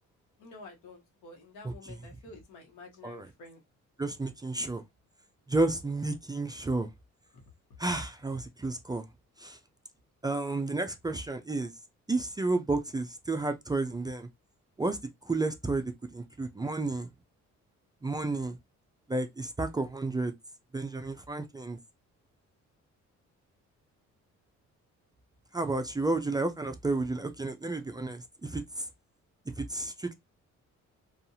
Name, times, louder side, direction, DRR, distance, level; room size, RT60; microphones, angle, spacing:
voice 1, 0.4-3.6, left 3 dB, 85° left, 1.1 m, -50 dB
voice 2, 4.0-4.8 5.5-6.9 7.8-9.0 9.4-9.6 10.2-11.7 12.1-14.3 14.8-15.0 15.3-17.1 18.0-18.6 19.1-20.3 20.7-21.8 25.5-28.9 29.6-30.1, right 2 dB, 15° right, 0.3 m, -31 dB
2.7 x 2.4 x 2.6 m
cardioid pair, 90°, 30 cm